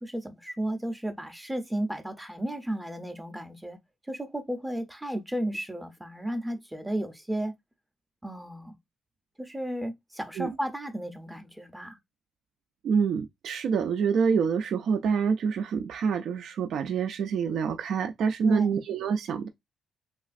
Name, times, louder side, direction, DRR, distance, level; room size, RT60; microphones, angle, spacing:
voice 1, 0.0-3.8 4.1-7.6 8.2-8.7 9.4-12.0 18.4-18.8, right 1 dB, 10° right, 0.5 m, -33 dB
voice 2, 12.8-19.5, right 6 dB, 70° right, 0.3 m, -26 dB
3.1 x 2.4 x 2.4 m
cardioid pair, 90°, 0 cm